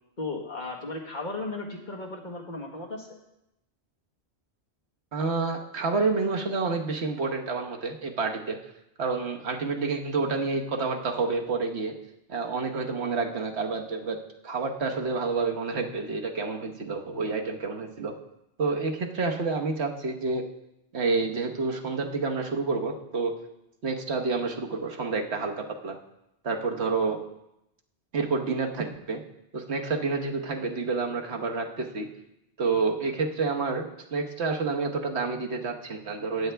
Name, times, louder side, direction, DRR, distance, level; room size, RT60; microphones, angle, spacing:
voice 1, 0.2-3.2, left 3 dB, 45° left, -1 dB, 1.7 m, -35 dB
voice 2, 5.1-8.6 9.0-11.9 12.3-14.2 14.4-18.1 18.6-20.4 20.9-23.3 23.8-26.0 26.4-27.2 28.1-29.2 29.5-32.1 32.6-36.5, right 4 dB, 75° right, 2 dB, 1.4 m, -29 dB
15.0 x 9.3 x 3.4 m, 0.87 s
omnidirectional pair, 1.1 m